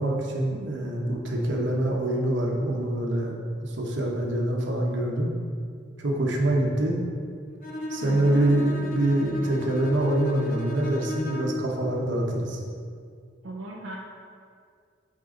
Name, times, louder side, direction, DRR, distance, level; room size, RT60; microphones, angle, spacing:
voice 1, 0.0-5.3 6.0-7.0 7.9-12.6, right 1 dB, 65° right, -1 dB, 1.1 m, -25 dB
Bowed string instrument, 7.6-11.7, left 1 dB, 45° left, 0.9 m, -35 dB
voice 2, 8.0-8.6 13.4-14.0, right 1 dB, 85° right, -3 dB, 0.7 m, -37 dB
9.1 x 4.2 x 3.9 m, 2.2 s
head